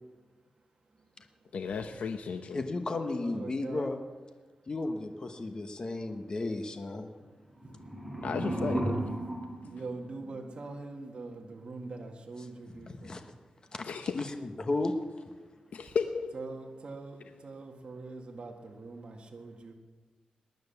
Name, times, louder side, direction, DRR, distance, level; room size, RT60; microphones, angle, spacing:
voice 1, 1.5-2.6 8.2-9.1 13.8-14.2 15.7-16.3, left 5 dB, 85° left, 7 dB, 0.8 m, -34 dB
voice 2, 2.5-4.0 4.7-7.1 12.4-12.5 12.8-13.2 13.7-13.8 14.1-14.9, left 2 dB, 35° left, 6 dB, 1.2 m, -34 dB
voice 3, 3.2-3.9 9.7-13.2 16.3-19.7, right 3 dB, 50° right, 1 dB, 1.9 m, -43 dB
sound 1, 7.5-10.6, right 1 dB, 5° right, 4.7 m, -35 dB
19.5 x 10.5 x 7.0 m, 1.4 s
wide cardioid pair, 140°, 2 cm